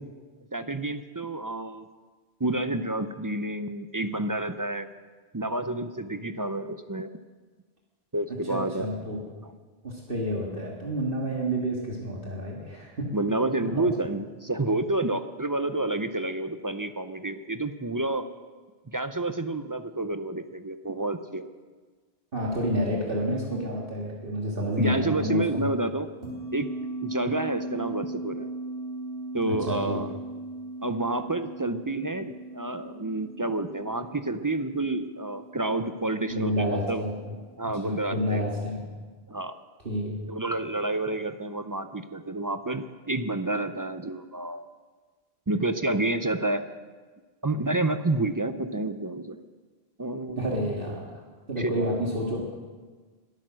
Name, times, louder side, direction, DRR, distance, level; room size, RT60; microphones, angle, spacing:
voice 1, 0.5-1.9 2.4-4.9 5.3-7.1 8.1-8.9 13.1-18.2 18.9-21.4 24.8-26.1 26.5-26.7 27.0-28.5 29.3-30.1 30.8-37.0 37.6-38.4 39.3-39.5 40.3-44.7 45.5-46.6 47.4-49.4 50.0-50.6 51.6-52.0, right 2 dB, 25° right, 10 dB, 0.5 m, -29 dB
voice 2, 8.4-9.2 9.8-13.1 13.6-13.9 22.3-25.4 29.5-30.0 36.3-37.1 37.6-38.8 39.8-40.2 50.3-51.1 51.5-52.5, equal, 60° right, -3 dB, 2.2 m, -29 dB
sound 1, 26.2-37.5, right 2 dB, 80° right, 3.9 m, -39 dB
22.0 x 9.0 x 6.3 m, 1.4 s
omnidirectional pair, 1.1 m